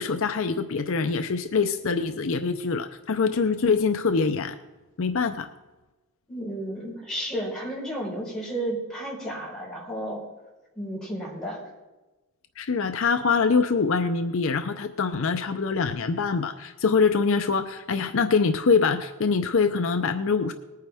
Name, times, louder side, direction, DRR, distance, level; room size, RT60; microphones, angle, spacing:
voice 1, 0.0-4.6 5.0-5.5 12.6-20.5, left 5 dB, 60° left, 8 dB, 0.6 m, -24 dB
voice 2, 6.3-10.2 10.7-11.6, right 1 dB, 5° left, -6 dB, 4.4 m, -32 dB
19.5 x 9.3 x 3.5 m, 1.1 s
head